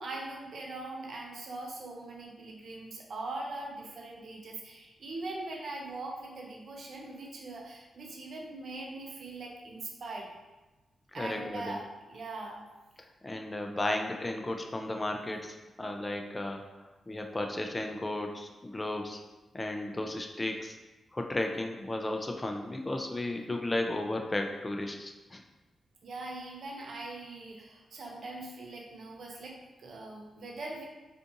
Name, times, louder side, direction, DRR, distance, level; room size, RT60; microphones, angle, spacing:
voice 1, 0.0-10.3 11.1-12.6 26.0-30.8, right 2 dB, 65° right, -1 dB, 0.5 m, -41 dB
voice 2, 11.2-11.8 13.2-16.7 17.1-19.2 19.5-20.7 21.1-25.4, left 1 dB, 25° left, 3 dB, 0.3 m, -34 dB
2.5 x 2.4 x 2.6 m, 1.1 s
cardioid pair, 75°, 0 cm